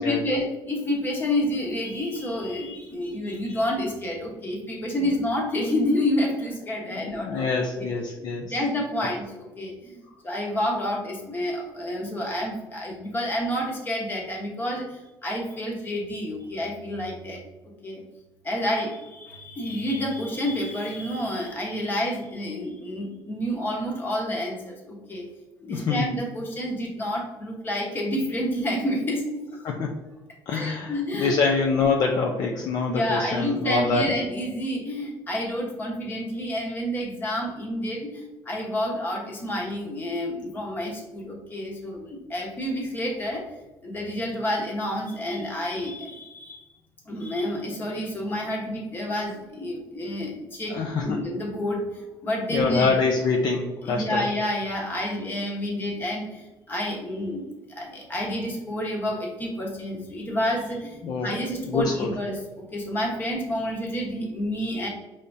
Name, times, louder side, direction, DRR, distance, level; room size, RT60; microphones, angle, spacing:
voice 1, 0.0-7.9 8.5-17.4 17.8-18.0 18.4-25.3 25.6-29.4 30.5-31.4 32.8-43.4 43.8-46.6 47.1-52.9 53.8-57.4 57.7-64.9, left 1 dB, 25° left, -1 dB, 1.2 m, -29 dB
voice 2, 6.8-8.5 25.6-26.1 29.6-29.9 30.5-34.1 50.7-51.2 52.5-54.2 61.0-61.4 61.7-62.1, left 4 dB, 55° left, 1 dB, 0.6 m, -25 dB
5.3 x 3.5 x 2.7 m, 1.1 s
cardioid pair, 145°, 8 cm